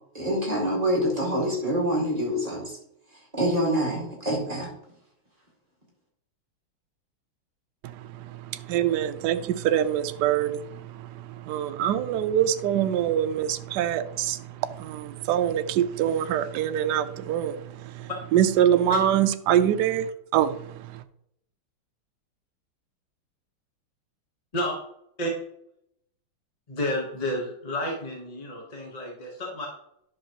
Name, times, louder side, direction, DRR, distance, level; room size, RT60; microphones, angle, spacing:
voice 1, 0.1-2.7 3.3-4.7, equal, 20° right, 1.9 m, -26 dB
voice 2, 8.7-10.6 11.5-14.4 14.8-17.6 18.0-20.1 20.3-20.6, right 10 dB, 80° right, 0.9 m, -24 dB
voice 3, 26.7-29.7, left 1 dB, 25° left, 1.0 m, -30 dB
10.5 x 6.3 x 3.0 m
omnidirectional pair, 2.3 m